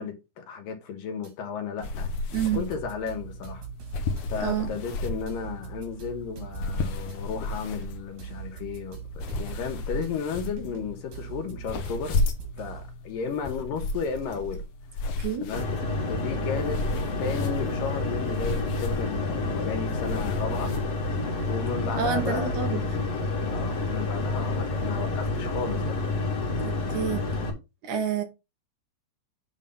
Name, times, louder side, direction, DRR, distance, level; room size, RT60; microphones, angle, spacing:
voice 1, 0.0-2.1 2.5-3.6 4.3-12.2 12.6-14.6 15.4-15.7 16.1-16.8 17.2-20.7 21.5-22.6 23.5-26.0, left 6 dB, 80° left, 3.2 m, -34 dB
sound 1, 1.2-1.3 1.8-4.2 4.7-7.2 7.6-10.1 10.6-13.0, right 11 dB, 90° right, 4.6 m, -42 dB
sound 2, 1.8-20.8, left 3 dB, 65° left, 2.5 m, -34 dB
voice 2, 4.4-4.7 15.2-15.5 22.0-22.8 26.6-27.2 27.8-28.2, right 8 dB, 65° right, 2.8 m, -28 dB
sound 3, 15.5-27.5, left 2 dB, 50° left, 3.4 m, -29 dB
9.1 x 4.1 x 5.5 m
omnidirectional pair, 3.9 m